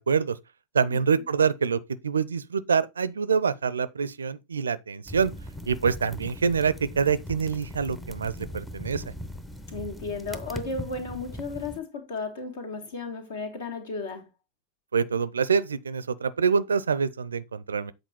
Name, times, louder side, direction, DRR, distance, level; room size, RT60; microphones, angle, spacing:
voice 1, 0.1-0.4 0.7-5.3 5.7-9.0 14.9-17.9, right 6 dB, 70° right, 0.5 m, -26 dB
sound 1, 5.1-11.8, equal, 5° left, 0.8 m, -39 dB
voice 2, 9.7-14.2, left 3 dB, 60° left, 2.1 m, -34 dB
8.0 x 4.3 x 4.4 m
figure-of-eight pair, 90°, 0 cm